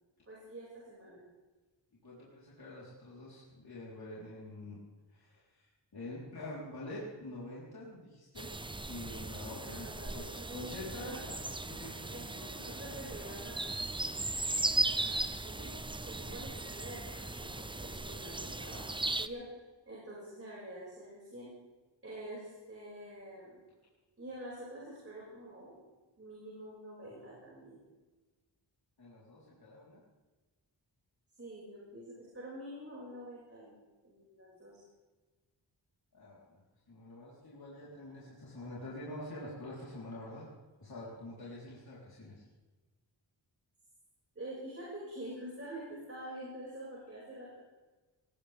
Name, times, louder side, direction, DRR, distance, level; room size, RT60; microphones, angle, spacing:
voice 1, 0.3-1.2 9.6-11.2 12.1-13.7 15.0-15.7 16.0-19.5 19.9-21.5 22.0-23.6 24.2-25.8 26.2-27.8 31.4-33.8 34.0-34.8 44.3-47.6, right 1 dB, 30° right, -6 dB, 6.0 m, -47 dB
voice 2, 2.0-4.8 5.1-8.5 8.9-13.2 13.6-13.7 29.0-30.0 36.1-36.6 36.9-40.5 40.8-42.4, left 1 dB, 55° left, -7 dB, 4.1 m, -46 dB
sound 1, 8.4-19.3, right 2 dB, 10° right, 0.5 m, -37 dB
19.5 x 18.5 x 3.6 m, 1.2 s
wide cardioid pair, 115°, 45 cm